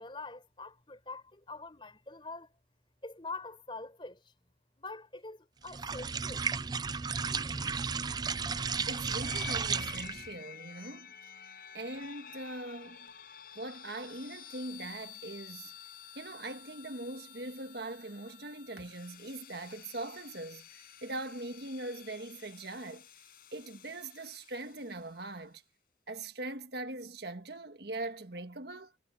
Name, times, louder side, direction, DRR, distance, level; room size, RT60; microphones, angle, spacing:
voice 1, 0.0-2.5 3.0-4.3 4.8-6.5, left 3 dB, 25° left, 4.6 m, -44 dB
sound 1, 5.7-10.3, right 5 dB, 20° right, 0.4 m, -34 dB
sound 2, 8.5-25.2, left 9 dB, 50° left, 5.4 m, -51 dB
voice 2, 8.9-13.1 13.5-15.7 16.1-23.1 23.5-25.6 26.1-28.9, right 2 dB, 60° right, 1.6 m, -41 dB
head